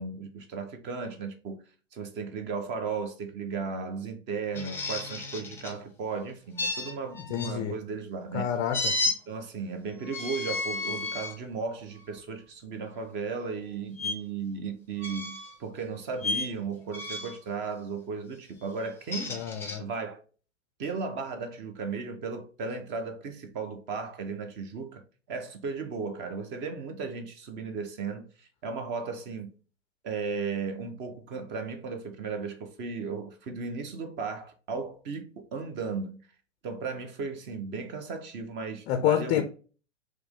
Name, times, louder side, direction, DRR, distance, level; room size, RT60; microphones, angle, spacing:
voice 1, 0.0-1.6 1.9-8.5 9.3-19.4 19.8-20.2 20.8-25.0 25.3-29.5 30.0-36.2 36.6-39.4, right 5 dB, 30° right, 0.9 m, -35 dB
sound 1, 4.5-5.8 6.6-7.5 8.7-9.2 10.0-11.4 12.0-12.2 14.0-14.1 15.0-15.6 16.2-16.5 16.9-17.4 18.8-19.8, left 3 dB, 5° left, 0.9 m, -32 dB
voice 2, 7.3-7.7 8.3-8.9 19.3-19.8 38.9-39.4, left 10 dB, 25° left, 0.5 m, -28 dB
4.8 x 3.1 x 3.6 m
figure-of-eight pair, 100°, 38 cm